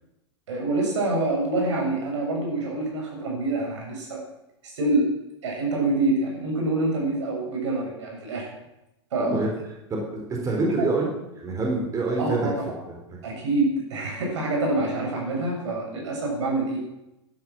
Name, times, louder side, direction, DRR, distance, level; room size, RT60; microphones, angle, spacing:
voice 1, 0.5-4.2 4.6-5.1 5.4-8.5 9.1-9.4 10.8-10.9 12.2-12.8 13.2-16.8, right 2 dB, 75° right, 0 dB, 7.0 m, -26 dB
voice 2, 9.9-11.1 11.3-12.5, right 2 dB, 20° right, 0 dB, 3.9 m, -26 dB
12.0 x 11.5 x 7.6 m, 0.91 s
hypercardioid pair, 120°, 15 cm